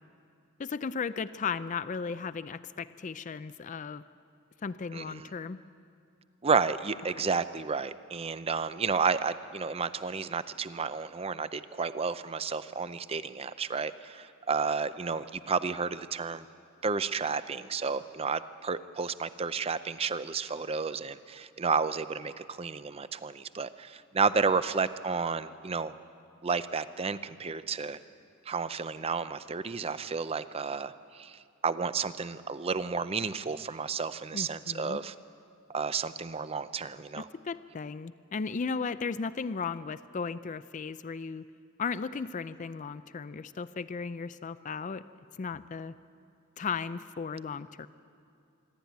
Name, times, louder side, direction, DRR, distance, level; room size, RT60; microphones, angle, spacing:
voice 1, 0.6-4.0 4.6-5.6 7.2-7.3 34.3-35.0 37.2-41.4 41.8-45.0 45.4-45.9 46.6-47.9, left 5 dB, 35° left, 14 dB, 0.4 m, -35 dB
voice 2, 4.9-5.3 6.4-16.4 16.8-25.9 26.4-28.0 28.5-35.1 35.7-37.3, right 5 dB, 30° right, 13 dB, 0.5 m, -31 dB
25.5 x 12.0 x 9.3 m, 2.5 s
head